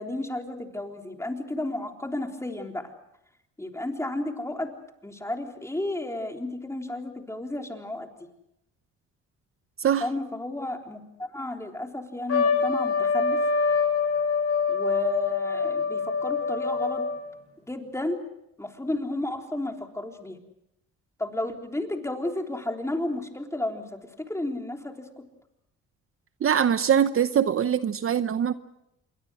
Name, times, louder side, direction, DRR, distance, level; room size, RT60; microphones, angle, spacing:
voice 1, 0.0-2.9 3.6-4.7 5.0-8.3 10.0-13.4 14.7-17.1 17.7-18.2 18.6-20.4 21.2-23.8 24.2-24.9, left 1 dB, 10° left, 3 dB, 3.7 m, -32 dB
Trumpet, 12.3-17.3, left 5 dB, 55° left, 6.5 m, -25 dB
voice 2, 26.4-28.5, right 8 dB, 45° right, 12 dB, 0.9 m, -23 dB
27.5 x 22.5 x 6.4 m, 0.81 s
cardioid pair, 90°, 30 cm